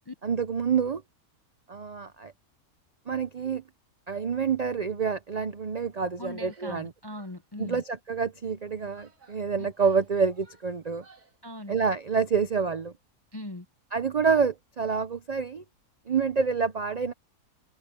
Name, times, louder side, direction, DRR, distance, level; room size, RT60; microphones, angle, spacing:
voice 1, 0.2-1.0 1.7-2.3 3.1-3.6 4.1-6.9 7.6-11.0 11.7-12.9 13.9-15.6 16.1-17.1, right 5 dB, 60° right, 0.4 m, -27 dB
voice 2, 6.2-7.8 9.6-9.7 11.4-11.8 13.3-13.7, left 1 dB, 30° left, 0.4 m, -40 dB
Female speech woman speaking / Yell, 6.4-6.8 7.1-8.0 8.6-11.4, right 4 dB, 85° right, 3.8 m, -59 dB
omnidirectional pair, 1.6 m